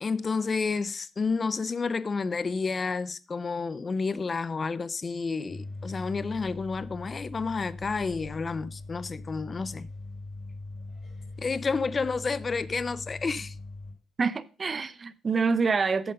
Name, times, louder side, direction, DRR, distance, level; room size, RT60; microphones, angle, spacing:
voice 1, 0.0-9.9 11.4-13.5, left 4 dB, 35° left, 0.5 m, -30 dB
sound 1, 5.5-13.9, left 2 dB, 60° left, 4.5 m, -41 dB
voice 2, 14.2-16.1, right 4 dB, 35° right, 0.7 m, -26 dB
7.8 x 7.6 x 5.3 m
cardioid pair, 90°, 0 cm